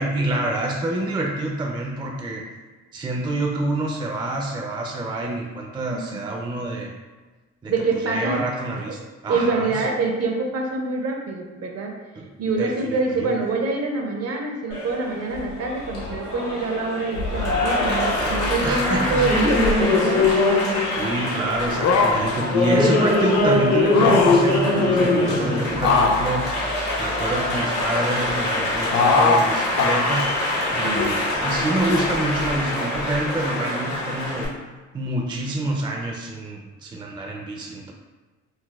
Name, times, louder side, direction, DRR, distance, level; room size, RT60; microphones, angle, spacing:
voice 1, 0.0-2.4 2.9-6.9 7.6-7.7 8.0-9.9 12.2-12.3 12.6-13.4 18.6-19.3 21.0-26.4 27.0-30.3 30.7-34.5 34.9-37.9, right 2 dB, 15° right, 0 dB, 0.4 m, -27 dB
voice 2, 5.9-6.2 7.7-8.4 8.9-9.0 9.3-11.9 12.4-20.3 30.8-31.2, right 3 dB, 55° right, 1 dB, 0.6 m, -25 dB
Applause, 14.7-34.5, left 2 dB, 90° left, 1.0 m, -23 dB
sound 1, 18.1-19.8 21.6-22.4 23.8-24.6 25.7-27.5 28.9-29.5 29.7-30.3 30.9-31.3 31.9-32.0, left 4 dB, 60° left, 0.4 m, -22 dB
3.9 x 2.0 x 2.3 m, 1.3 s
cardioid pair, 90°, 30 cm